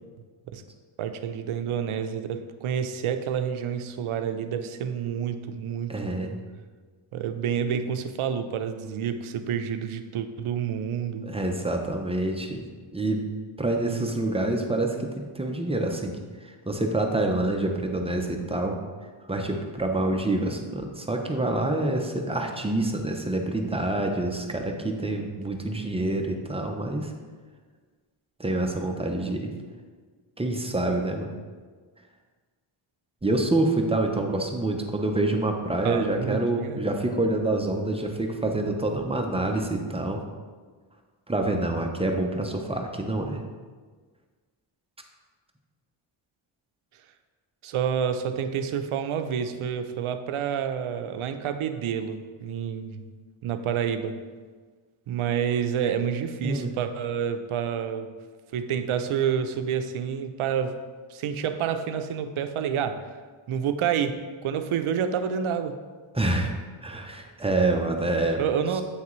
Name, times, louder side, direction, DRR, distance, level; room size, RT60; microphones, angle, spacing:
voice 1, 1.0-6.2 7.1-11.3 35.8-36.8 47.6-53.0 53.4-54.2 55.1-58.1 58.5-60.8 61.1-63.0 63.5-65.8 68.4-68.8, right 8 dB, 85° right, 9 dB, 0.6 m, -28 dB
voice 2, 5.9-6.4 11.2-12.6 12.9-13.3 13.6-18.8 19.3-27.1 28.4-29.5 30.4-31.3 33.2-40.2 41.3-43.4 56.4-56.7 66.1-66.5 66.8-68.4, right 2 dB, 15° right, 3 dB, 0.4 m, -27 dB
8.1 x 5.9 x 3.1 m, 1.5 s
wide cardioid pair, 170°, 48 cm